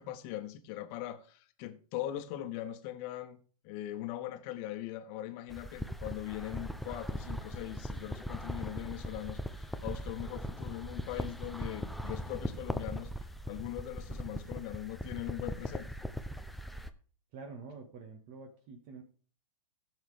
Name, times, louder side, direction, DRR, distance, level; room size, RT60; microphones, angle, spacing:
voice 1, 0.0-3.4 3.6-15.9, left 13 dB, 40° left, 1.4 m, -41 dB
sound 1, 5.5-16.9, equal, ahead, 0.6 m, -40 dB
voice 2, 17.3-19.0, right 4 dB, 40° right, 1.8 m, -47 dB
15.5 x 7.3 x 3.5 m
hypercardioid pair, 115°, 19 cm